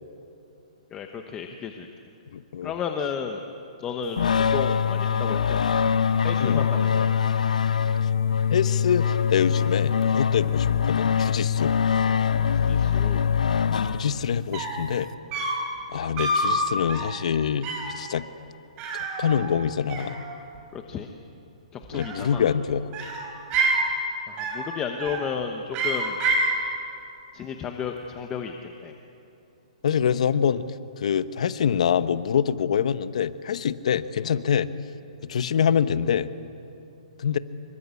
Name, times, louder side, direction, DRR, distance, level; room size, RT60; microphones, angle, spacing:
voice 1, 0.9-1.9 2.6-3.4 3.8-6.0 6.2-7.1 12.5-13.2 20.7-21.1 21.7-22.5 24.3-26.2 27.3-28.9, left 7 dB, 15° left, 4 dB, 1.1 m, -33 dB
voice 2, 2.3-2.7 6.4-6.7 8.0-8.1 8.5-11.8 13.9-15.1 15.9-17.7 17.9-18.2 19.2-20.2 21.9-22.9 29.8-30.7 31.0-34.7 35.2-36.3 37.2-37.4, left 8 dB, 60° left, 13 dB, 1.1 m, -25 dB
sound 1, 4.2-14.4, left 7 dB, 85° left, 1.1 m, -23 dB
sound 2, 14.2-14.3 14.5-14.9 15.3-15.7 16.2-16.5 16.9-17.2 17.6-18.0 18.8-19.6 19.9-20.6 21.8-22.5 22.9-23.9 24.4-24.7 25.0-25.4 25.7-26.6, right 2 dB, 25° right, 4.2 m, -27 dB
26.0 x 24.0 x 8.4 m, 2.8 s
hypercardioid pair, 165°, 4 cm